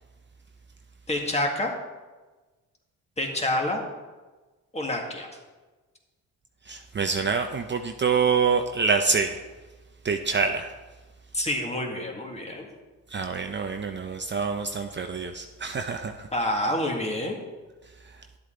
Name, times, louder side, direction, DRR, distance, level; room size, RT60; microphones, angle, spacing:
voice 1, 1.1-1.7 3.2-3.8 4.7-5.3 11.3-12.7 16.3-17.4, left 1 dB, 20° left, 0 dB, 2.0 m, -27 dB
voice 2, 6.7-9.4 10.0-10.7 13.1-16.3, right 5 dB, 35° right, 5 dB, 0.7 m, -26 dB
11.0 x 7.9 x 3.8 m, 1.2 s
cardioid pair, 75°, 33 cm